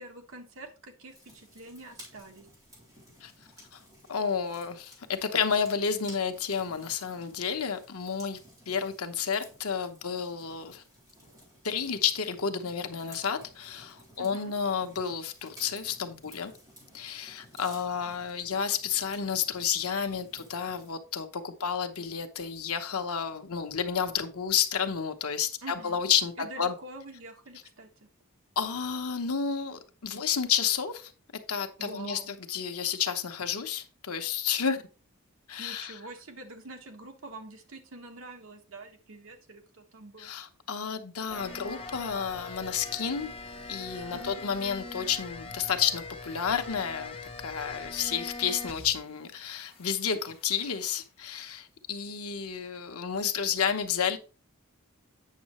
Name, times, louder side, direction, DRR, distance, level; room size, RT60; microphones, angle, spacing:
voice 1, 0.0-2.5 14.2-14.5 25.6-26.0 26.4-28.1 31.8-32.3 35.6-40.3 44.1-44.4, right 2 dB, 70° right, 1.4 m, -46 dB
sound 1, 1.1-20.9, equal, 15° right, 3.8 m, -55 dB
voice 2, 4.1-8.4 8.7-10.8 11.6-16.5 16.9-26.7 28.6-31.1 31.5-34.8 35.5-35.9 40.2-43.3 43.7-54.2, left 7 dB, 90° left, 1.0 m, -31 dB
sound 2, 41.3-49.2 49.5-51.0, left 3 dB, 25° left, 0.9 m, -43 dB
8.5 x 6.5 x 3.0 m
head